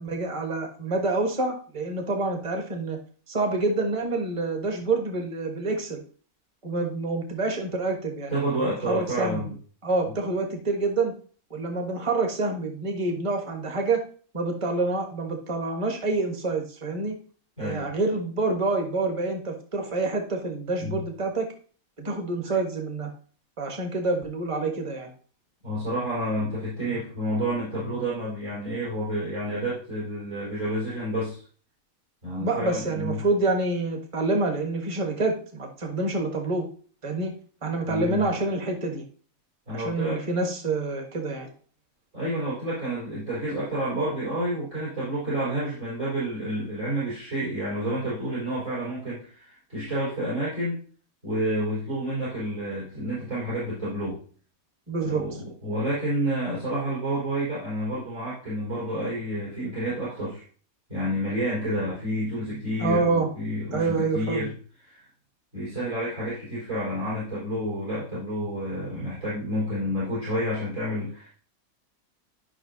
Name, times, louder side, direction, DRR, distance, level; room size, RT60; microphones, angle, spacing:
voice 1, 0.0-3.0 3.3-6.0 6.6-9.4 9.8-11.1 11.5-14.0 14.3-17.1 17.6-21.5 22.0-23.1 23.6-25.1 32.4-36.7 37.0-37.3 37.6-39.0 39.7-41.5 54.9-55.2 62.8-63.3 63.7-64.5, right 3 dB, 25° right, 3 dB, 1.2 m, -27 dB
voice 2, 8.3-9.6 17.6-17.9 20.8-21.0 22.4-22.6 25.6-31.4 32.2-33.2 37.9-38.3 39.7-40.2 42.1-50.8 51.2-54.2 55.0-60.4 60.9-64.5 64.9-65.1 65.5-71.3, right 1 dB, 60° right, -9 dB, 4.7 m, -29 dB
11.5 x 5.7 x 2.7 m, 0.42 s
omnidirectional pair, 1.5 m